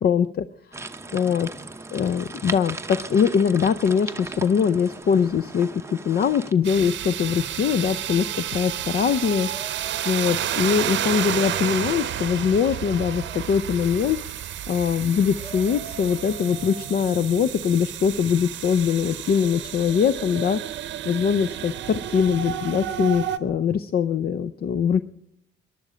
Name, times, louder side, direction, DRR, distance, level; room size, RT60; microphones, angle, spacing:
voice 1, 0.0-0.5 0.7-0.8 1.1-1.5 1.9-9.8 10.1-14.2 14.7-20.6 21.0-25.0, left 7 dB, 50° left, 14 dB, 0.5 m, -22 dB
sound 1, 0.7-6.5, right 3 dB, 15° right, 0.7 m, -37 dB
sound 2, 6.4-16.9, right 2 dB, 30° left, 3.1 m, -45 dB
sound 3, 6.6-23.4, right 11 dB, 65° right, 0.7 m, -31 dB
22.5 x 11.0 x 5.0 m, 0.75 s
cardioid pair, 90°, 20 cm